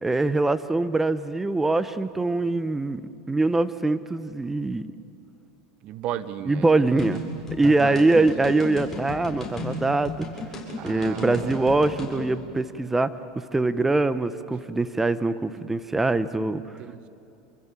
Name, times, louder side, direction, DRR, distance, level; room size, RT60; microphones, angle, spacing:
voice 1, 0.0-3.0 3.3-4.8 6.4-7.2 7.5-10.3 10.8-16.6, right 2 dB, 10° right, 13 dB, 1.2 m, -23 dB
voice 2, 5.8-7.1 7.6-8.5 10.8-11.9 16.8-17.1, right 11 dB, 50° right, 13 dB, 1.3 m, -36 dB
sound 1, 7.0-12.1, left 2 dB, 20° left, 7.8 m, -34 dB
28.5 x 23.0 x 7.6 m, 2.7 s
hypercardioid pair, 90°, 2 cm